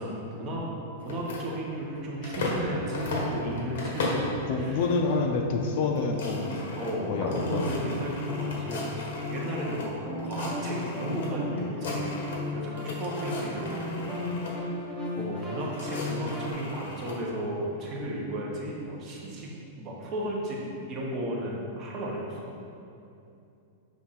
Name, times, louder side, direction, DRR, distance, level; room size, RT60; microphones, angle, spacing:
voice 1, 0.0-4.8 6.8-12.2 12.5-14.1 15.2-20.6 20.9-22.5, right 1 dB, 25° right, -3 dB, 1.0 m, -34 dB
sound 1, 1.0-2.7 2.9-4.3 4.8-5.2 5.5-5.6 5.9-9.9 10.2-11.3 11.6-12.5 12.8-14.5 15.3-17.2, left 2 dB, 65° left, 1.5 m, -36 dB
voice 2, 4.4-6.6 7.1-7.6, left 4 dB, 45° left, 3 dB, 0.5 m, -27 dB
sound 2, 5.5-16.5, left 2 dB, ahead, 0.8 m, -35 dB
6.3 x 3.3 x 5.7 m, 2.7 s
supercardioid pair, 170°, 0 cm